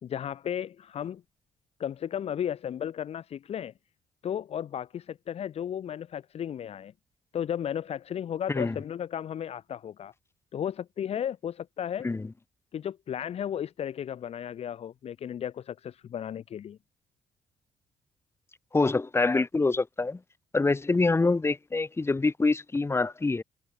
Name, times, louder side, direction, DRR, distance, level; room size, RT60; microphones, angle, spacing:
voice 1, 0.0-1.2 1.8-3.7 4.2-6.9 7.3-10.1 10.5-12.1 12.7-16.8, left 9 dB, 60° left, 1.8 m, -34 dB
voice 2, 18.7-20.2 20.5-23.4, left 3 dB, 20° left, 1.5 m, -25 dB
cardioid pair, 80°, 12 cm